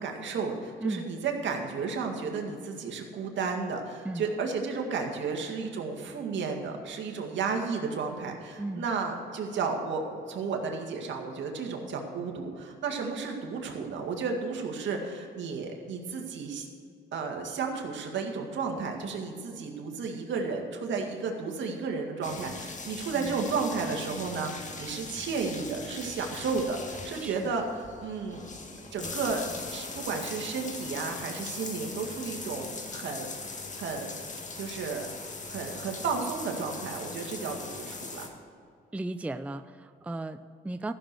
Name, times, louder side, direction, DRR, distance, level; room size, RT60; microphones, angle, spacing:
voice 1, 0.0-16.7 17.1-28.5 28.9-33.3 33.8-34.2 34.6-35.1 35.5-38.3, right 4 dB, 70° right, 2 dB, 2.1 m, -33 dB
sound 1, 22.2-38.3, left 3 dB, 40° left, 1.9 m, -40 dB
voice 2, 27.2-27.5 38.9-40.9, right 2 dB, 5° right, 11 dB, 0.4 m, -35 dB
14.5 x 6.9 x 6.3 m, 2.4 s
cardioid pair, 90°, 20 cm